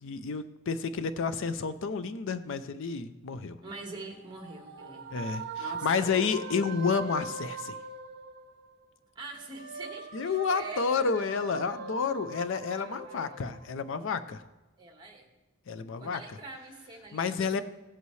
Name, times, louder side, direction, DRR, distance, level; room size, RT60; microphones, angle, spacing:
voice 1, 0.0-3.6 5.1-7.8 10.1-14.4 15.7-16.2 17.1-17.6, left 5 dB, 60° left, 12 dB, 0.5 m, -30 dB
voice 2, 3.6-5.1 5.6-6.9 9.1-11.1 11.8-11.9 12.5-13.5 14.8-15.3 16.0-17.6, right 2 dB, 20° right, 2 dB, 1.5 m, -45 dB
sound 1, 3.9-8.8 9.2-14.0, right 4 dB, 50° right, 0.8 m, -41 dB
16.5 x 8.2 x 3.2 m, 1.1 s
head